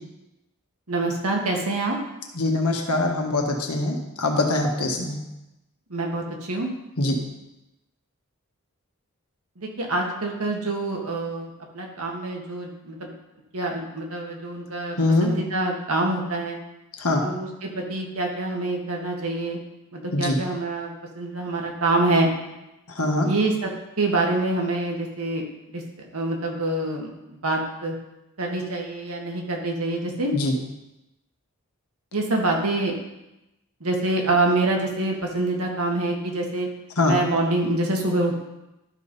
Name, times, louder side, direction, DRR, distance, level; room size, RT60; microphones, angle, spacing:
voice 1, 0.9-2.0 5.9-6.7 9.6-13.1 13.5-16.6 17.2-19.6 19.9-22.3 23.2-23.7 24.0-25.4 25.7-25.8 26.1-27.1 27.4-27.9 28.4-30.3 32.1-32.9 33.8-36.7 37.0-38.3, right 2 dB, 70° right, 0 dB, 1.7 m, -26 dB
voice 2, 2.4-5.2 7.0-7.2 15.0-15.3 17.0-17.2 20.1-20.4 22.9-23.3 30.3-30.5 37.0-37.2, left 2 dB, 75° left, 2 dB, 1.4 m, -23 dB
12.0 x 5.3 x 4.1 m, 0.94 s
head